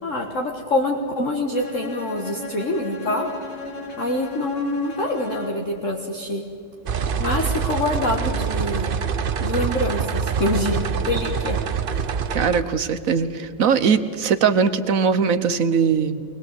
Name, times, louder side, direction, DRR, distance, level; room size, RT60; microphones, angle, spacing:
voice 1, 0.0-3.3 4.0-6.4 7.2-8.9 9.4-11.6 11.9-12.0, left 2 dB, 45° left, 0 dB, 1.8 m, -25 dB
Bowed string instrument, 1.5-5.8, left 1 dB, 65° left, 3.2 m, -36 dB
sound 1, 6.9-12.6, right 7 dB, 80° right, 0.5 m, -25 dB
voice 2, 12.3-16.2, right 6 dB, 55° right, 12 dB, 1.1 m, -20 dB
22.5 x 21.0 x 8.2 m, 2.3 s
omnidirectional pair, 2.1 m